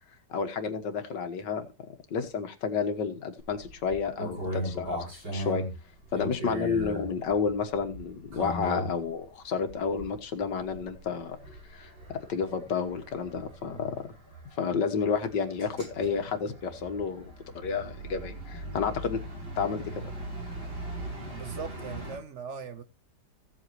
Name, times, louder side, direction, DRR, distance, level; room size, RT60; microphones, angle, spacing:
voice 1, 0.3-1.7 2.1-5.6 6.1-11.4 11.7-11.9 12.3-14.0 14.6-19.2 19.6-19.8, left 6 dB, 85° left, 2.0 m, -30 dB
sound 1, 3.4-9.2 9.7-10.2 10.6-22.2, right 1 dB, 75° right, 8.7 m, -39 dB
voice 2, 21.3-22.8, right 6 dB, 50° right, 1.2 m, -39 dB
16.0 x 7.9 x 3.1 m
omnidirectional pair, 1.8 m